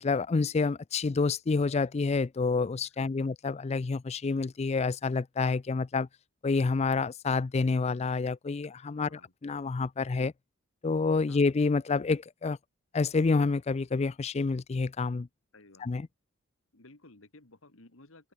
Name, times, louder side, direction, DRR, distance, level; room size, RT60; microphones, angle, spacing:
voice 1, 0.0-6.1 6.4-10.3 10.8-12.6 12.9-15.3 15.8-16.1, left 4 dB, 30° left, 0.4 m, -28 dB
voice 2, 3.0-3.3 9.0-9.3 11.3-11.4 15.5-15.9 16.7-18.3, left 2 dB, 70° left, 2.3 m, -56 dB
head